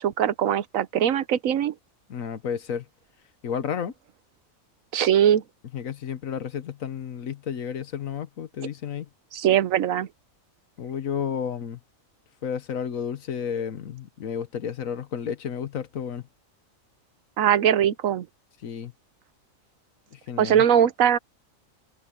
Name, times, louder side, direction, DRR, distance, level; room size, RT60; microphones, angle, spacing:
voice 1, 0.0-1.7 4.9-5.4 9.3-10.1 17.4-18.3 20.4-21.2, right 9 dB, 75° right, 1.2 m, -21 dB
voice 2, 2.1-2.8 3.4-3.9 5.7-9.1 10.8-11.8 12.4-16.3 18.6-18.9 20.1-20.6, left 7 dB, 75° left, 1.4 m, -32 dB
omnidirectional pair, 1.4 m